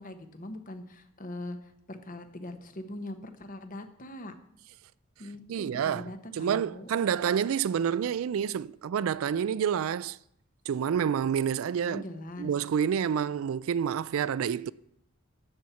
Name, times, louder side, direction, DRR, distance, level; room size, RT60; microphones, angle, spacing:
voice 1, 0.0-4.3 5.2-6.9 11.9-12.5, left 1 dB, 40° left, 1.0 m, -41 dB
voice 2, 5.5-10.2 10.7-12.0 12.4-14.7, right 8 dB, 70° right, 0.3 m, -28 dB
12.5 x 4.4 x 8.2 m
head